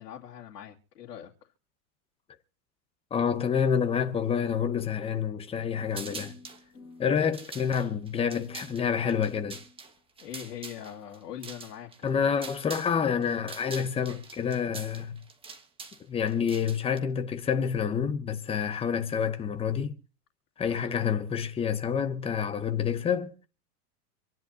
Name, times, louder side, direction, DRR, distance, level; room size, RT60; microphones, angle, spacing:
voice 1, 0.0-1.5 7.1-7.3 10.2-12.3 20.7-21.0, left 10 dB, 90° left, 2.5 m, -43 dB
voice 2, 3.1-6.3 7.0-9.6 12.0-15.2 16.1-20.0 20.6-23.5, left 7 dB, 10° left, 0.8 m, -28 dB
sound 1, 5.9-6.6 7.2-13.0 13.2-17.0, right 4 dB, 10° right, 1.2 m, -44 dB
sound 2, 6.0-7.3 8.3-10.3, left 3 dB, 35° left, 6.8 m, -52 dB
26.5 x 10.5 x 2.8 m
supercardioid pair, 150°, 47 cm